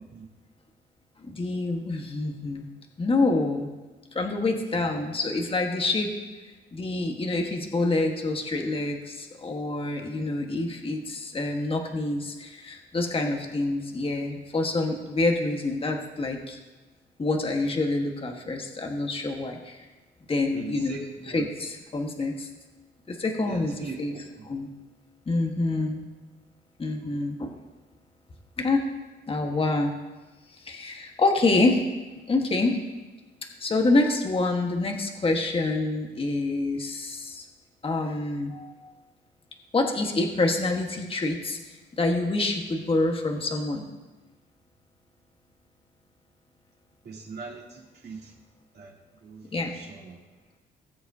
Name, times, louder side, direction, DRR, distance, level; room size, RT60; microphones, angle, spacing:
voice 1, 1.2-2.7 3.0-3.7 4.1-6.1 6.7-16.6 17.2-19.9 20.3-21.0 21.3-22.5 23.1-24.1 24.4-24.7 25.3-26.0 26.8-27.5 28.6-28.8 29.3-29.9 30.6-31.8 32.3-32.8 33.6-37.4 37.8-38.9 39.7-43.8 49.5-49.7, left 2 dB, 30° left, 2 dB, 1.4 m, -27 dB
voice 2, 20.5-21.5 23.4-24.2 47.0-48.3 48.7-48.9 49.2-50.2, right 4 dB, 55° right, -4 dB, 2.9 m, -41 dB
19.5 x 7.7 x 2.8 m, 1.2 s
cardioid pair, 90°, 20 cm